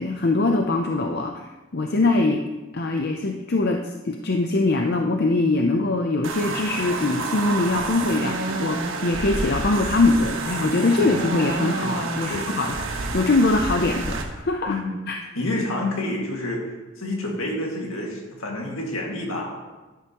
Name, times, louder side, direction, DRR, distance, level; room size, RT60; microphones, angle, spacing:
voice 1, 0.0-2.4 2.7-14.8 15.1-15.2, left 2 dB, 45° left, 3 dB, 0.5 m, -22 dB
sound 1, 6.2-14.2, right 3 dB, 65° right, 1.2 m, -29 dB
voice 2, 14.7-15.0 15.4-16.6 17.0-19.6, left 1 dB, 70° left, -1 dB, 2.1 m, -28 dB
12.0 x 10.5 x 3.0 m, 1.2 s
head